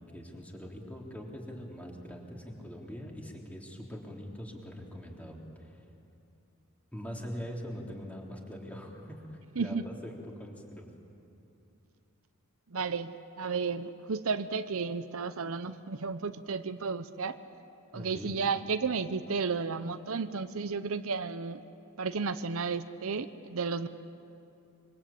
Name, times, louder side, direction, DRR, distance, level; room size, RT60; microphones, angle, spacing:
voice 1, 0.1-5.8 6.9-10.9 17.9-18.3, equal, 5° left, -1 dB, 3.5 m, -43 dB
voice 2, 9.6-9.9 12.7-17.4 17.9-21.6 22.0-23.9, right 5 dB, 65° right, 11 dB, 0.8 m, -33 dB
26.5 x 24.5 x 8.6 m, 2.7 s
head